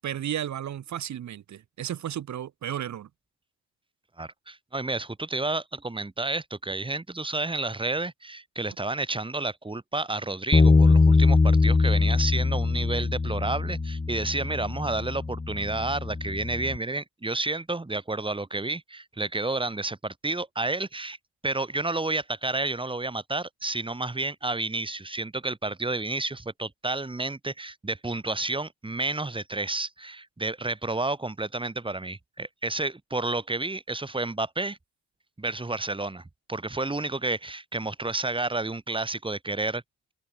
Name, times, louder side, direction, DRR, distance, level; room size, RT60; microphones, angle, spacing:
voice 1, 0.0-3.1, right 10 dB, 65° right, 7.5 m, -33 dB
voice 2, 4.2-21.2 21.4-34.8 35.4-36.2 36.5-39.8, right 2 dB, 15° right, 6.8 m, -30 dB
Bass guitar, 10.5-16.8, left 3 dB, 25° left, 7.0 m, -22 dB
open air
cardioid pair, 90°, 30 cm